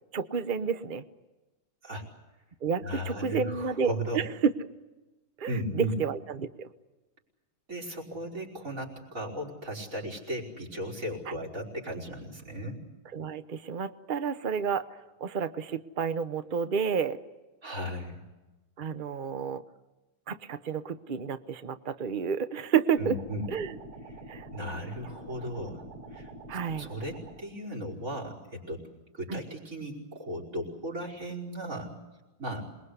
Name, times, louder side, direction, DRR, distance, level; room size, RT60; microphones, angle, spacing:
voice 1, 0.1-1.0 2.6-4.5 5.4-6.7 11.3-11.4 13.1-14.8 15.2-17.2 18.8-19.6 20.3-23.2 23.5-23.7 24.3-24.4 26.5-26.9 29.3-29.4, right 6 dB, 80° right, 11 dB, 0.4 m, -30 dB
voice 2, 2.8-4.2 5.5-6.0 7.7-12.8 17.6-18.2 23.0-23.5 24.5-26.3 26.8-28.8 29.1-31.9 32.4-32.7, equal, 35° right, 4 dB, 5.5 m, -36 dB
sound 1, 22.9-27.4, right 1 dB, 55° right, 5.3 m, -46 dB
27.0 x 21.5 x 8.2 m, 1.1 s
omnidirectional pair, 2.4 m